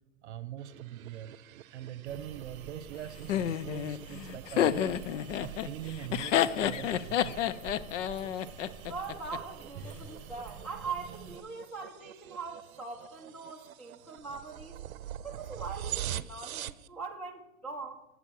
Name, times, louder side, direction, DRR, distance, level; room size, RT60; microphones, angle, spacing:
voice 1, 0.2-1.3 1.7-7.5, right 11 dB, 55° right, 14 dB, 1.0 m, -43 dB
sound 1, 0.6-16.9, right 11 dB, 75° right, 0.7 m, -45 dB
sound 2, 2.1-11.4, right 7 dB, 25° right, 1.5 m, -48 dB
Laughter, 3.3-9.4, left 10 dB, 60° left, 0.7 m, -30 dB
voice 2, 8.9-14.8 15.2-18.1, right 4 dB, 5° left, -5 dB, 0.7 m, -41 dB
12.0 x 8.0 x 6.3 m, 0.95 s
hypercardioid pair, 145°, 42 cm